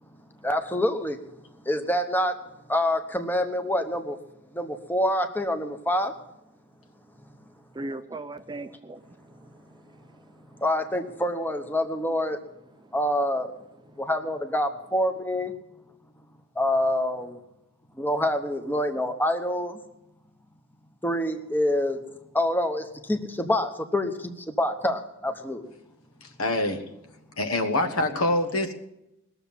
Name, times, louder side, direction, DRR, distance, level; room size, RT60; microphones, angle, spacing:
voice 1, 0.4-1.2 1.6-2.4 2.7-4.2 4.5-6.1 10.6-12.4 12.9-13.5 14.0-15.5 16.5-17.4 17.9-19.8 21.0-25.7, left 1 dB, 10° left, 6 dB, 1.0 m, -26 dB
voice 2, 7.7-9.0 9.3-10.0 10.4-10.6, right 2 dB, 20° right, 10 dB, 0.5 m, -39 dB
voice 3, 26.2-26.8 27.4-28.7, left 1 dB, 70° left, 7 dB, 1.4 m, -25 dB
20.5 x 7.1 x 7.4 m, 0.86 s
head